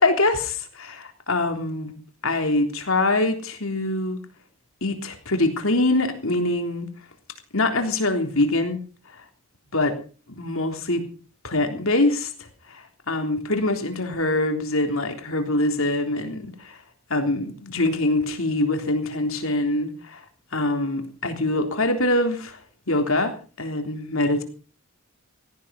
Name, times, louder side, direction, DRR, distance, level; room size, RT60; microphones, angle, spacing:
voice 1, 0.0-1.9 2.2-4.2 4.8-6.9 7.5-8.8 9.1-9.2 9.7-10.0 10.3-11.0 11.4-16.8 17.1-20.2 20.5-22.6 22.9-24.4, left 2 dB, 65° left, 5 dB, 3.5 m, -24 dB
18.0 x 16.5 x 4.1 m, 0.37 s
head